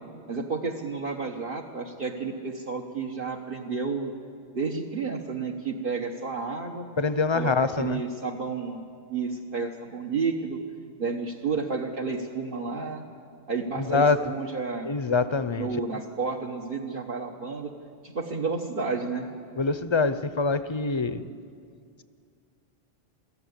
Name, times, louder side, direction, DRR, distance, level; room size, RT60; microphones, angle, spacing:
voice 1, 0.3-4.1 4.5-6.9 7.3-8.8 9.1-10.6 11.0-13.0 13.5-14.9 15.6-17.7 18.0-19.3, right 4 dB, 60° right, 0 dB, 1.4 m, -31 dB
voice 2, 7.0-8.0 13.8-14.2 14.9-15.7 19.5-21.2, left 4 dB, 30° left, 12 dB, 0.7 m, -24 dB
22.0 x 14.0 x 9.7 m, 2.2 s
omnidirectional pair, 1.1 m